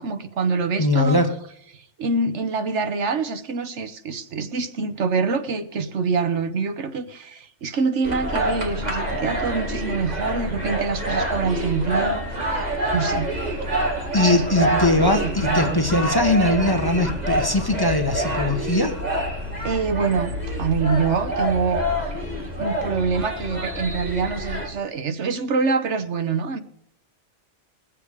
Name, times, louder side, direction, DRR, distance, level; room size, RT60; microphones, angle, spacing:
voice 1, 0.0-1.2 1.7-12.6 12.9-13.3 14.3-15.8 19.6-21.9 22.6-26.6, right 4 dB, 70° right, 10 dB, 1.3 m, -25 dB
voice 2, 0.8-1.3 14.1-19.0, left 2 dB, 20° left, 5 dB, 1.2 m, -21 dB
sound 1, 8.0-24.7, right 1 dB, 35° right, 2.5 m, -26 dB
21.5 x 7.5 x 4.9 m, 0.67 s
omnidirectional pair, 1.2 m